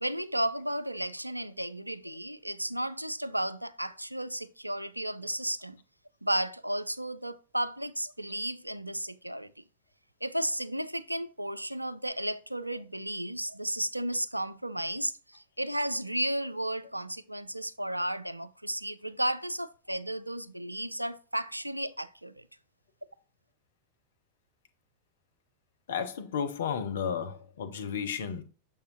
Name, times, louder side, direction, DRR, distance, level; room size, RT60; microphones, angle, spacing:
voice 1, 0.0-5.8 6.2-9.5 10.2-22.4, right 1 dB, 85° right, 0.3 m, -33 dB
voice 2, 25.9-28.4, left 7 dB, 60° left, 0.8 m, -33 dB
6.9 x 5.5 x 2.7 m
figure-of-eight pair, 90°, 0 cm